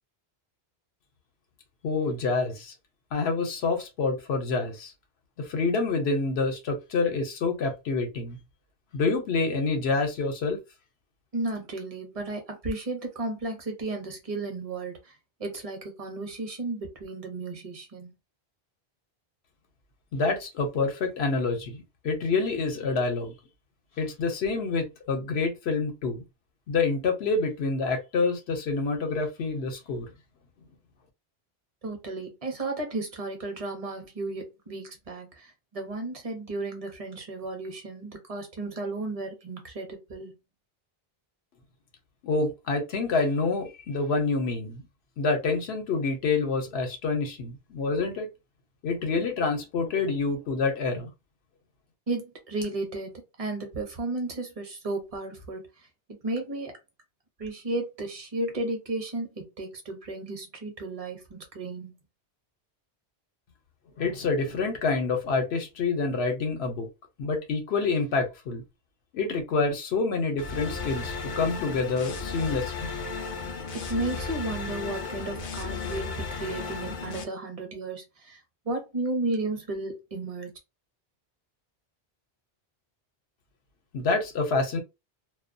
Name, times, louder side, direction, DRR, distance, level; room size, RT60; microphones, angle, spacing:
voice 1, 1.8-2.7 3.1-4.9 5.4-8.4 8.9-10.6 20.1-23.3 24.0-26.2 26.7-30.1 42.2-44.8 45.2-48.3 48.8-51.1 64.0-66.9 67.2-68.6 69.1-72.9 83.9-84.8, left 4 dB, 80° left, 0.9 m, -27 dB
voice 2, 11.3-15.0 15.4-18.1 31.8-40.3 52.1-53.1 53.4-55.6 56.2-56.7 57.4-61.9 73.7-78.4 78.6-80.5, right 2 dB, 40° right, 0.8 m, -33 dB
sound 1, 70.4-77.2, left 4 dB, 55° left, 0.6 m, -34 dB
2.2 x 2.2 x 2.5 m
omnidirectional pair, 1.1 m